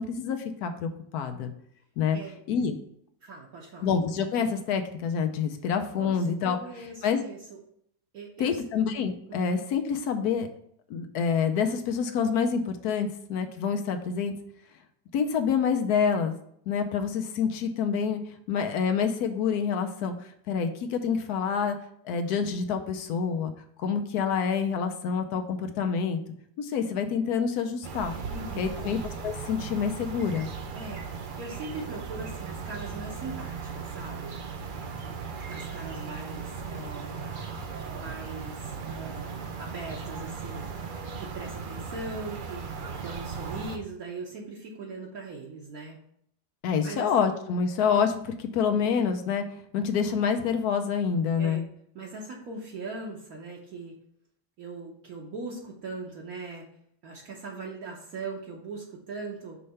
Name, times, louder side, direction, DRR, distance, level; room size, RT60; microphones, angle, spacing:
voice 1, 0.0-1.5 2.0-2.2 2.5-2.7 3.8-6.6 7.0-7.2 8.4-10.5 10.9-14.3 15.1-16.4 16.7-18.2 18.5-21.8 22.0-23.5 23.8-26.2 26.6-28.1 28.6-29.0 29.2-30.5 46.6-49.4 49.7-51.7, left 6 dB, 75° left, 7 dB, 1.1 m, -27 dB
voice 2, 2.1-2.4 3.2-3.9 6.0-7.6 8.1-8.6 9.3-9.5 28.3-28.9 30.7-34.4 35.5-37.3 37.9-40.7 41.2-42.7 43.0-46.0 46.8-47.1 51.4-51.6 51.9-53.9 54.6-56.6 57.0-59.6, right 3 dB, 65° right, -3 dB, 1.3 m, -40 dB
sound 1, 27.8-43.8, right 5 dB, 85° right, 0.4 m, -37 dB
5.6 x 3.3 x 5.4 m, 0.69 s
omnidirectional pair, 1.7 m